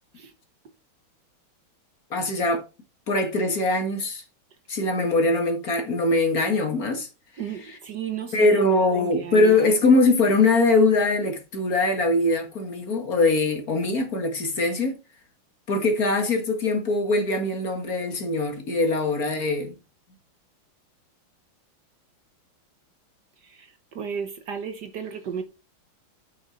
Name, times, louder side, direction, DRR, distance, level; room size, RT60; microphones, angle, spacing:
voice 1, 2.1-2.7 3.1-4.2 4.7-7.1 7.5-7.8 8.3-15.0 15.7-19.7, left 2 dB, 45° left, 2.1 m, -22 dB
voice 2, 7.4-9.6 23.6-23.7 23.9-25.4, right 7 dB, 60° right, 1.4 m, -33 dB
8.9 x 6.4 x 4.5 m
omnidirectional pair, 2.4 m